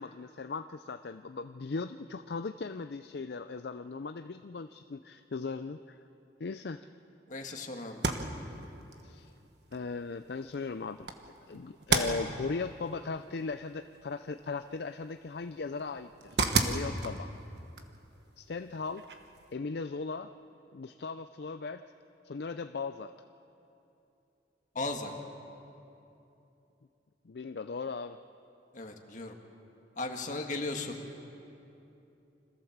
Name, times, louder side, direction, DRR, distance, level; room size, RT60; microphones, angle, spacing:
voice 1, 0.0-6.0 6.4-6.9 9.0-9.3 9.7-11.1 11.5-17.3 18.4-19.0 19.5-20.3 20.7-21.8 22.2-23.1 27.3-28.2, left 4 dB, 60° left, 10 dB, 0.5 m, -38 dB
voice 2, 7.3-8.0 24.8-25.1 28.7-29.3 30.0-31.0, left 2 dB, 45° left, 3 dB, 1.8 m, -36 dB
sound 1, 7.9-19.5, right 3 dB, 65° right, 1.4 m, -36 dB
26.0 x 15.0 x 7.3 m, 2.8 s
head